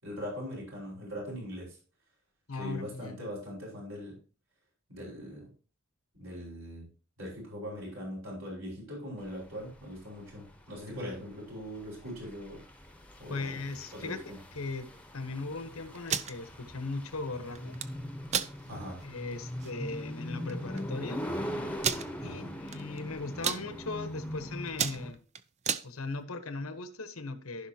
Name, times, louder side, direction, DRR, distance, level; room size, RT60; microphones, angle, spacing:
voice 1, 0.0-1.8 2.6-4.2 4.9-5.5 6.2-6.9 7.2-12.6 13.2-13.6 14.0-14.2 18.7-19.0 22.2-22.5, equal, 70° right, -4 dB, 5.4 m, -41 dB
voice 2, 2.5-3.2 10.9-11.2 13.3-17.8 19.0-21.3 22.2-25.2 25.8-27.7, left 3 dB, 90° left, 9 dB, 1.2 m, -38 dB
sound 1, 9.3-25.1, equal, 5° left, 0.9 m, -41 dB
sound 2, 15.9-16.3 17.6-17.9 18.3-18.5 19.0-19.1 19.5-19.7 20.5-20.6 20.8-20.9 21.8-22.1 22.7-23.0 23.3-23.6 24.2-24.4 24.7-25.9, right 8 dB, 35° right, 0.5 m, -31 dB
15.0 x 5.5 x 2.9 m, 0.37 s
head